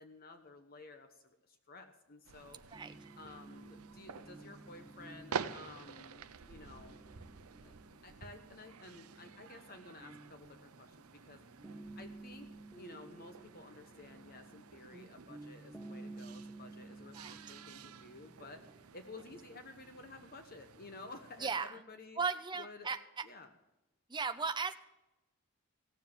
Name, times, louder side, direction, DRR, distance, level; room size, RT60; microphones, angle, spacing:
voice 1, 0.0-2.8 3.2-7.0 7.6-7.7 8.0-11.0 11.3-12.5 12.8-18.6 18.9-22.2 22.6-22.9 23.2-23.5, left 3 dB, 40° left, 7 dB, 1.0 m, -53 dB
sound 1, 2.2-21.6, right 6 dB, 80° right, 0.7 m, -50 dB
sound 2, 2.7-11.2 11.6-18.8, right 2 dB, ahead, 1.0 m, -54 dB
voice 2, 21.4-21.8 22.2-23.2 24.1-24.7, right 5 dB, 20° right, 9 dB, 0.6 m, -37 dB
16.5 x 7.3 x 7.3 m, 0.96 s
head